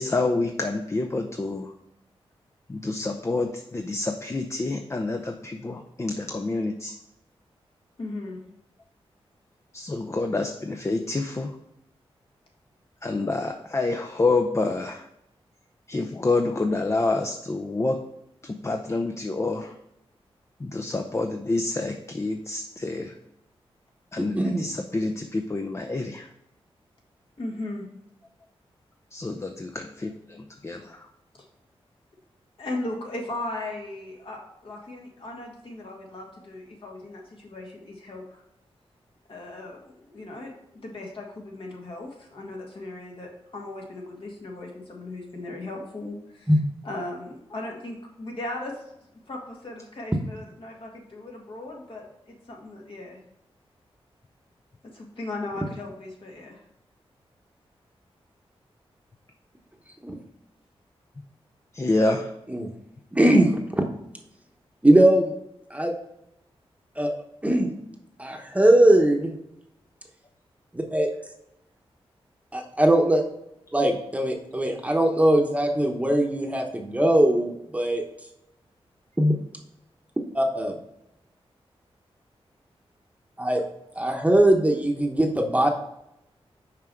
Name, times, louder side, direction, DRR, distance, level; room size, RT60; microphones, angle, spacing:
voice 1, 0.0-1.7 2.7-6.9 9.7-11.5 13.0-15.0 15.9-18.0 18.4-19.7 20.6-23.1 24.1-26.3 29.1-31.0 61.7-62.3, left 2 dB, 25° left, 5 dB, 0.5 m, -27 dB
voice 2, 8.0-8.4 27.4-27.9 32.6-38.4 39.3-46.5 46.8-48.7 49.3-53.2 54.9-56.6, left 2 dB, 60° left, -1 dB, 1.8 m, -37 dB
voice 3, 24.3-24.7 46.5-46.6 60.0-60.2 62.5-62.7 63.2-63.8 64.8-65.3 65.7-65.9 67.0-67.1 67.4-67.7 68.2-69.3 70.7-71.1 72.5-73.2 73.7-78.0 79.2-79.3 80.3-80.8 83.4-83.6 84.0-85.7, right 1 dB, 15° right, 3 dB, 1.0 m, -20 dB
5.9 x 4.8 x 4.5 m, 0.81 s
cardioid pair, 75°, 10 cm